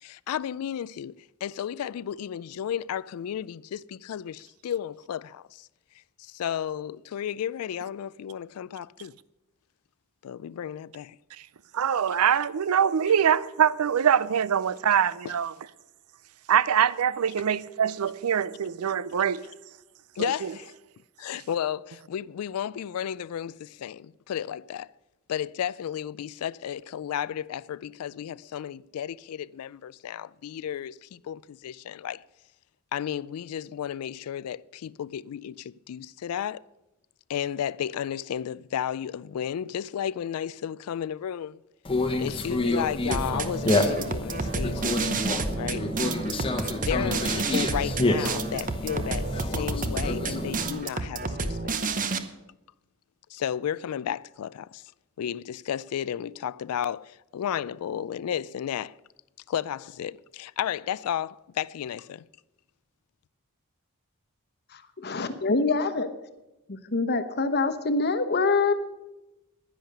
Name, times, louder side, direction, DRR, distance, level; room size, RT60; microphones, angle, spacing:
voice 1, 0.0-5.7 6.2-9.1 10.2-11.2 15.2-15.3 20.2-20.7 21.2-24.9 25.3-32.2 32.9-36.7 37.3-41.6 42.2-45.0 45.5-45.9 46.8-52.0 53.3-54.8 55.2-59.0 59.5-62.3, left 9 dB, 85° left, 0.3 m, -33 dB
voice 2, 11.7-15.5 16.5-19.5 20.2-20.5, right 8 dB, 85° right, 0.5 m, -24 dB
Conversation, 41.8-50.7, left 2 dB, 25° left, 1.0 m, -29 dB
sound 1, 43.1-52.2, right 4 dB, 40° right, 0.8 m, -30 dB
voice 3, 64.7-66.1 66.7-68.7, left 3 dB, 50° left, 1.0 m, -25 dB
10.5 x 10.5 x 6.7 m
head